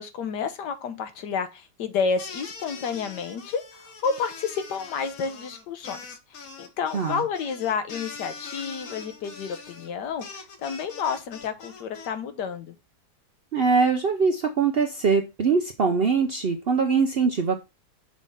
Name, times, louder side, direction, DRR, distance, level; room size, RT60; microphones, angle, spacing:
voice 1, 0.0-12.8, left 6 dB, 80° left, 1.5 m, -30 dB
sound 1, 2.2-12.1, left 5 dB, 60° left, 1.5 m, -42 dB
voice 2, 6.9-7.2 13.5-17.6, right 5 dB, 65° right, 0.6 m, -22 dB
6.2 x 3.6 x 5.4 m
omnidirectional pair, 1.8 m